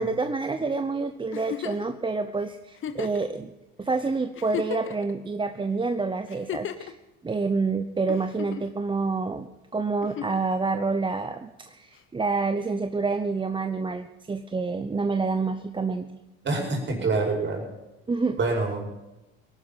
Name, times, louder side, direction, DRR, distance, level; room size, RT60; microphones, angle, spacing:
voice 1, 0.0-3.5 3.8-7.0 7.2-16.1 18.1-18.4, right 4 dB, 15° right, 8 dB, 0.8 m, -28 dB
Giggle, 1.3-1.9 2.8-3.3 3.9-4.0 4.3-5.1 6.3-6.9 8.1-8.7 10.0-10.5 12.0-12.1, left 9 dB, 40° left, 1.3 m, -34 dB
voice 2, 16.4-17.6 18.4-18.9, right 3 dB, 40° right, 2 dB, 5.3 m, -26 dB
19.0 x 11.5 x 5.7 m, 1.0 s
supercardioid pair, 105°, 30 cm